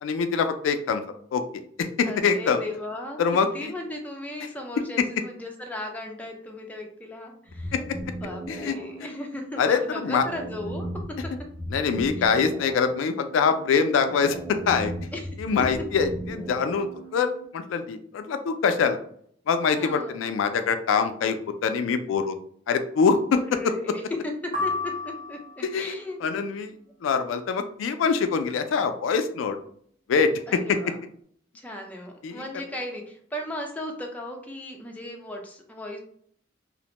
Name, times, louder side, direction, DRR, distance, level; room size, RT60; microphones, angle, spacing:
voice 1, 0.0-1.0 1.3-1.4 1.8-2.6 3.2-3.7 8.5-8.7 9.6-10.2 11.7-14.9 15.4-16.9 17.1-19.0 19.5-21.4 21.6-22.3 22.7-23.4 25.7-25.9 26.2-26.7 27.0-29.6 30.1-30.8 32.2-32.4, left 5 dB, 85° left, 8 dB, 0.3 m, -24 dB
voice 2, 2.1-7.8 8.2-11.3 12.2-12.3 15.1-15.3 19.7-20.2 23.3-26.2 30.5-31.0 31.5-36.0, left 1 dB, 10° left, 1 dB, 0.4 m, -36 dB
sound 1, 7.5-17.5, right 1 dB, 75° right, 0.8 m, -37 dB
sound 2, 24.5-25.8, left 3 dB, 45° right, 0.9 m, -31 dB
2.4 x 2.1 x 2.9 m, 0.62 s
head